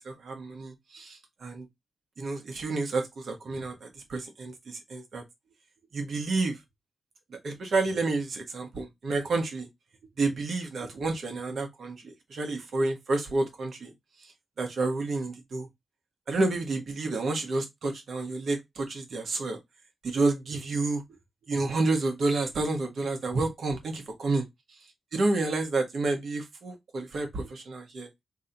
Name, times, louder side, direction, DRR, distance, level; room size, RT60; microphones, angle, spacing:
voice 1, 0.0-1.7 2.2-5.2 5.9-6.6 7.3-9.7 10.2-13.9 14.2-14.3 14.6-15.7 16.3-19.6 20.0-21.0 21.5-24.4 25.1-28.1, right 3 dB, 70° right, 1.3 m, -30 dB
3.0 x 2.9 x 3.9 m
cardioid pair, 70°, 0 cm